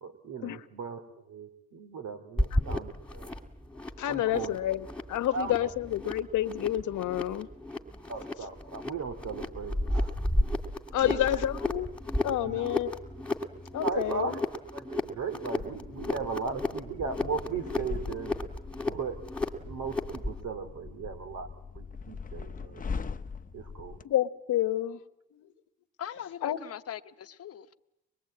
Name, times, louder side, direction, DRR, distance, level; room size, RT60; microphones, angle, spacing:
voice 1, 0.0-3.3 4.0-4.6 5.3-5.7 8.1-10.1 11.0-11.2 12.4-12.8 13.8-14.4 14.7-18.3 18.8-19.2 19.6-21.5 21.7-22.8 23.5-24.0, right 5 dB, 70° right, 9 dB, 2.9 m, -37 dB
sound 1, 2.4-20.4, left 1 dB, 5° left, 2.3 m, -33 dB
voice 2, 4.0-7.5 10.9-11.9 12.2-13.0 13.7-14.4 23.9-25.0 25.3-25.5 26.4-26.6, left 12 dB, 80° left, 11 dB, 1.2 m, -29 dB
sound 2, 15.5-24.0, left 5 dB, 25° left, 0.9 m, -41 dB
voice 3, 26.0-27.8, left 9 dB, 50° left, 10 dB, 1.0 m, -41 dB
24.5 x 22.0 x 8.6 m, 0.89 s
cardioid pair, 90°, 30 cm